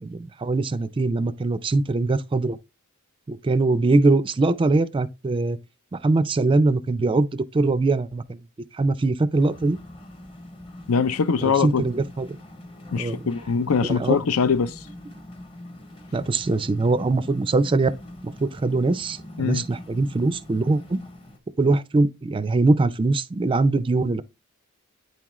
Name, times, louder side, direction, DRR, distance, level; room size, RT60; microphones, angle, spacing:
voice 1, 0.0-2.6 3.3-5.6 5.9-8.4 8.7-9.8 11.6-12.4 13.0-13.2 13.9-14.2 16.1-17.9 18.2-21.0 21.6-24.2, right 3 dB, 25° right, 0.4 m, -22 dB
sound 1, 9.3-21.4, left 1 dB, 25° left, 0.9 m, -43 dB
voice 2, 10.9-11.8 12.9-14.8 19.4-19.6, left 5 dB, 85° left, 0.5 m, -22 dB
9.3 x 3.6 x 3.0 m
head